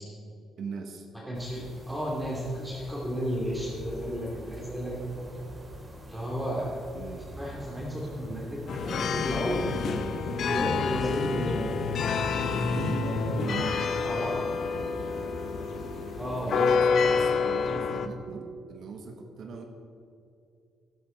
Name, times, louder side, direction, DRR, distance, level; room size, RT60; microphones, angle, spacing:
voice 1, 0.6-1.1 6.9-7.3 13.4-13.9 14.7-15.3 16.4-19.7, right 4 dB, 65° right, 3 dB, 1.3 m, -40 dB
voice 2, 1.3-5.4 6.1-6.8 7.4-10.0 10.4-11.8 12.7-13.5 14.0-14.3 16.2-16.5, equal, 5° right, -6 dB, 2.8 m, -33 dB
sound 1, 1.3-16.8, right 1 dB, 20° right, 3.4 m, -45 dB
sound 2, 8.7-18.1, left 5 dB, 65° left, 0.8 m, -28 dB
12.5 x 11.0 x 4.5 m, 2.6 s
cardioid pair, 90°, 0 cm